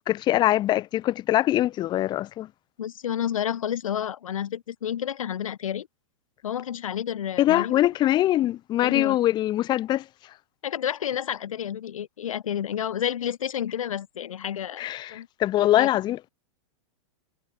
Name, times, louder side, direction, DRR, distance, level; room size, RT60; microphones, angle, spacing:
voice 1, 0.1-2.5 7.4-10.0 14.8-16.3, left 14 dB, 25° left, 0.9 m, -23 dB
voice 2, 2.8-5.9 6.4-7.8 8.8-9.2 10.6-15.3 15.8-15.9, left 9 dB, 85° left, 1.1 m, -30 dB
hypercardioid pair, 135°, 17 cm